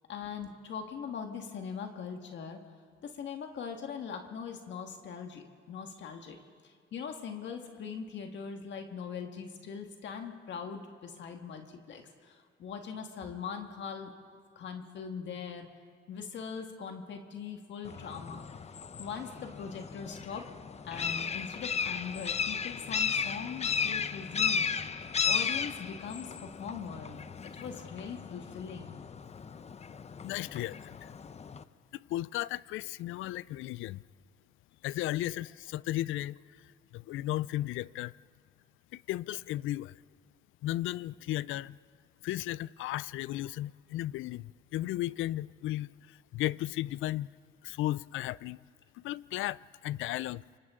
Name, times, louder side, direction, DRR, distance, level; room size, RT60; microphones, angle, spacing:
voice 1, 0.0-2.7 3.0-14.1 14.6-15.7 16.1-18.4 19.0-20.5 20.8-25.0 25.2-27.2 27.5-29.0, left 6 dB, 65° left, 1.7 m, -41 dB
sound 1, 17.9-31.6, left 6 dB, 35° left, 0.7 m, -35 dB
voice 2, 30.2-31.1 31.9-34.0 34.8-38.1 38.9-40.0 40.6-41.8 42.2-47.3 47.6-48.6 48.9-50.4, left 15 dB, 85° left, 0.4 m, -35 dB
28.0 x 25.0 x 3.7 m
cardioid pair, 90°, 20 cm